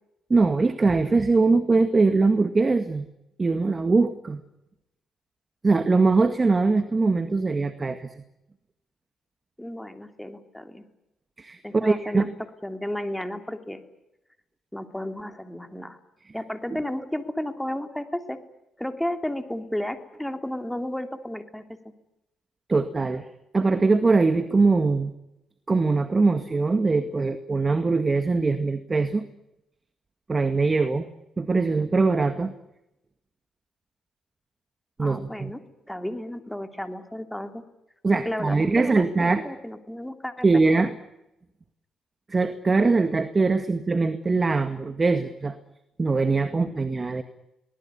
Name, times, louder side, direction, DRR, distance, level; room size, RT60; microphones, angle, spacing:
voice 1, 0.3-3.1 3.4-4.4 5.6-8.2 11.4-12.3 22.7-23.3 23.5-25.1 25.7-29.2 30.3-31.1 31.4-32.5 35.0-35.5 38.0-39.5 40.4-40.9 42.3-45.6 46.0-47.2, right 3 dB, 25° right, 10 dB, 1.9 m, -22 dB
voice 2, 9.6-10.8 11.6-12.3 12.6-13.8 14.7-16.0 16.3-18.4 18.8-21.6 35.0-35.6 35.9-37.6 38.2-40.8, left 1 dB, 5° left, 7 dB, 3.1 m, -33 dB
24.0 x 20.0 x 9.9 m, 0.89 s
cardioid pair, 90°, 0 cm